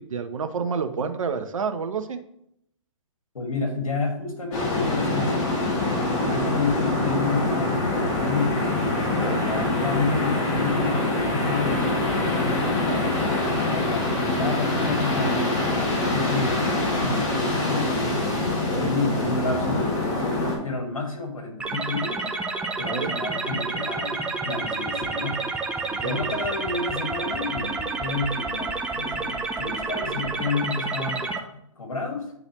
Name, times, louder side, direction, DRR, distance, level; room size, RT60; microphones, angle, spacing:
voice 1, 0.0-2.2 6.1-6.5 8.9-9.4 12.8-13.1 18.5-18.9 22.8-23.1 25.9-26.3, right 5 dB, 75° right, 7 dB, 0.8 m, -30 dB
voice 2, 3.3-5.5 6.1-8.6 9.2-12.2 13.4-18.1 18.8-22.3 22.8-25.5 26.0-31.3 31.8-32.3, left 3 dB, 85° left, 3 dB, 2.0 m, -30 dB
sound 1, 4.5-20.6, left 2 dB, 35° left, 1.9 m, -24 dB
sound 2, 21.6-31.4, right 3 dB, 5° right, 0.5 m, -29 dB
9.9 x 4.0 x 3.0 m, 0.75 s
hypercardioid pair, 130°, 17 cm